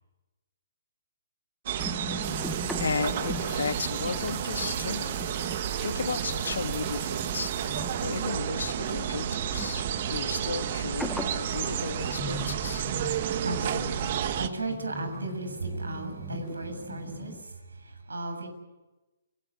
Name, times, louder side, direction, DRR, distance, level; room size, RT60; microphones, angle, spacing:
sound 1, 1.7-14.5, right 9 dB, 50° right, 1.8 m, -31 dB
sound 2, 1.8-17.4, left 2 dB, 5° left, 1.4 m, -42 dB
sound 3, 2.2-10.0, right 14 dB, 30° right, 1.8 m, -46 dB
voice 1, 2.8-5.2 5.8-12.9, left 5 dB, 75° left, 9 dB, 2.1 m, -34 dB
voice 2, 13.2-18.5, right 2 dB, 90° right, 7 dB, 7.4 m, -35 dB
29.5 x 18.5 x 8.5 m, 1.1 s
hypercardioid pair, 135°, 0 cm